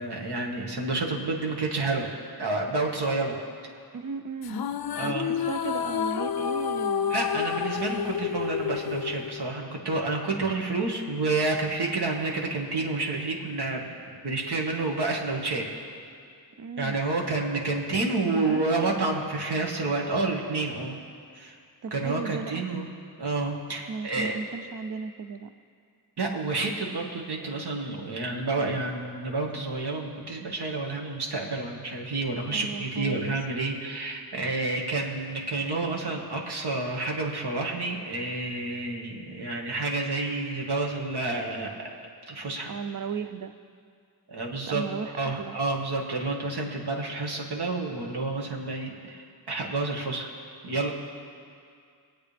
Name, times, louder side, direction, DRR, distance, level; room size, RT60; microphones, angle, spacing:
voice 1, 0.0-2.1 2.4-3.4 4.9-5.3 7.1-13.9 14.2-15.7 16.8-21.0 21.3-21.6 21.9-22.9 23.2-24.4 26.2-41.7 42.3-42.7 44.3-44.8 45.2-50.3 50.6-50.9, right 3 dB, 70° right, 0 dB, 1.7 m, -29 dB
voice 2, 3.9-4.6 5.0-7.1 16.6-17.0 18.2-18.7 21.8-22.6 23.9-25.5 32.5-33.3 42.7-43.5 44.7-45.6, right 5 dB, 50° right, 11 dB, 0.6 m, -35 dB
sound 1, 4.4-9.9, left 8 dB, 60° left, 0.5 m, -30 dB
22.0 x 8.2 x 3.4 m, 2.3 s
wide cardioid pair, 100°, 41 cm